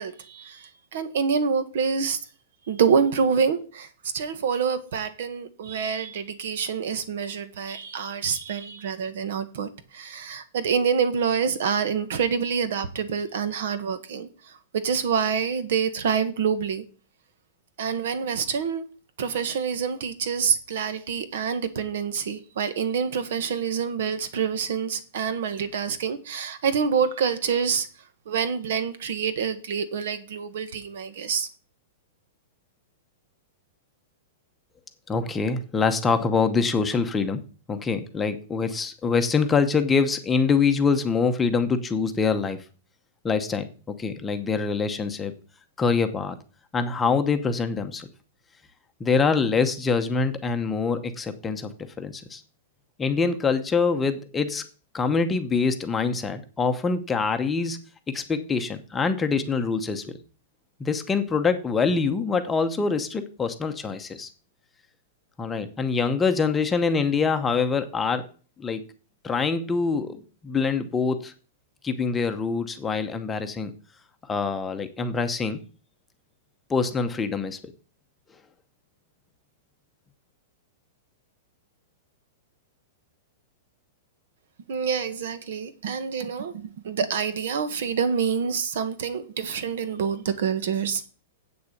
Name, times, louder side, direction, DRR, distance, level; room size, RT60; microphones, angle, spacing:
voice 1, 0.0-2.2 2.7-3.9 4.1-16.8 17.8-18.8 19.2-27.9 28.2-31.5 84.7-91.1, right 6 dB, 65° right, 1.5 m, -27 dB
voice 2, 35.1-42.6 43.2-45.3 45.8-46.4 46.7-48.1 49.0-51.7 52.0-52.4 53.0-54.6 54.9-57.8 58.1-60.1 60.8-64.3 65.4-68.3 68.6-68.8 69.2-71.3 71.8-73.7 74.3-75.6 76.7-77.7, left 5 dB, 10° left, 0.9 m, -25 dB
7.9 x 6.7 x 8.3 m
supercardioid pair, 165°, 0 cm